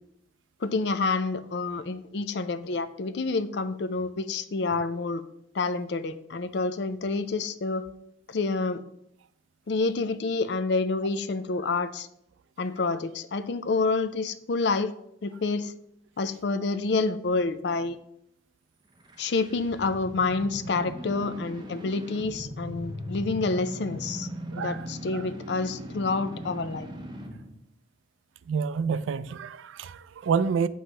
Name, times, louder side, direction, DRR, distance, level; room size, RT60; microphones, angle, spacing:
voice 1, 0.6-5.2 5.5-7.8 8.3-8.8 9.7-12.1 12.6-14.9 15.2-15.7 16.2-18.0 19.2-24.3 24.5-26.9, left 3 dB, 60° left, 0.5 m, -28 dB
sound 1, 18.9-27.5, equal, 25° right, 0.7 m, -39 dB
voice 2, 24.5-24.8 25.1-25.3 28.5-30.7, right 6 dB, 85° right, 0.3 m, -28 dB
7.7 x 3.1 x 5.4 m
head